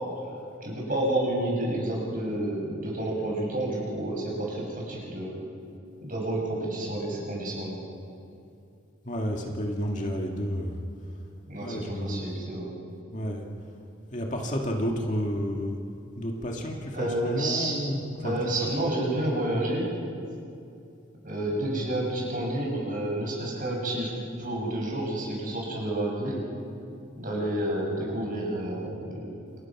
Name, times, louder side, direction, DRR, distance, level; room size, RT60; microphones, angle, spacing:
voice 1, 0.6-5.4 6.0-7.8 11.5-12.7 16.9-17.7 18.2-19.9 21.2-24.1 24.4-26.4 27.2-29.3, right 1 dB, 40° right, -2 dB, 7.0 m, -30 dB
voice 2, 9.0-10.8 11.6-12.2 13.1-13.4 14.1-15.8 16.2-18.4, equal, 35° left, 0 dB, 2.3 m, -31 dB
28.5 x 28.5 x 6.2 m, 2.5 s
head